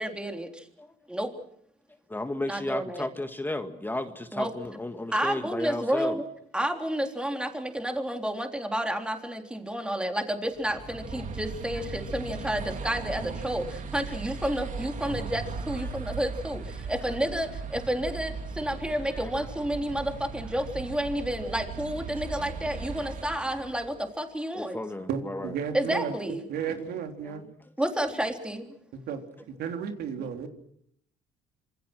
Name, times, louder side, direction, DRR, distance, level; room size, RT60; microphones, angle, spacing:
voice 1, 0.0-0.6 1.1-1.3 2.5-3.1 4.3-4.5 5.1-6.2 6.5-24.8 25.7-26.4 27.8-28.7, equal, 5° right, 5 dB, 3.6 m, -30 dB
voice 2, 2.1-6.2 11.7-11.8 15.8-16.0 16.8-17.2 19.1-19.5 22.4-22.5 23.0-23.2 24.5-25.5 27.2-27.7, left 2 dB, 10° left, 8 dB, 1.7 m, -35 dB
sound 1, 10.6-24.1, right 4 dB, 50° right, 3.5 m, -38 dB
voice 3, 25.1-26.1 26.5-27.5 29.1-30.5, right 7 dB, 75° right, 5 dB, 3.6 m, -33 dB
27.0 x 25.0 x 6.2 m, 0.68 s
cardioid pair, 110°, 17 cm